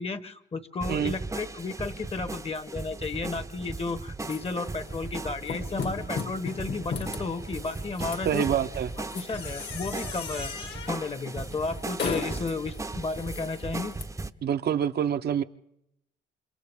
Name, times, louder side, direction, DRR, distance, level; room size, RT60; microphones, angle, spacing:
voice 1, 0.0-8.4 9.0-13.9, left 3 dB, 30° left, 1.2 m, -33 dB
sound 1, 0.8-14.3, right 3 dB, 15° right, 0.7 m, -37 dB
sound 2, 4.2-14.0, left 5 dB, 60° left, 2.1 m, -38 dB
voice 2, 8.2-8.9 14.4-15.4, right 9 dB, 55° right, 0.7 m, -26 dB
29.0 x 26.5 x 3.6 m
cardioid pair, 90°, 20 cm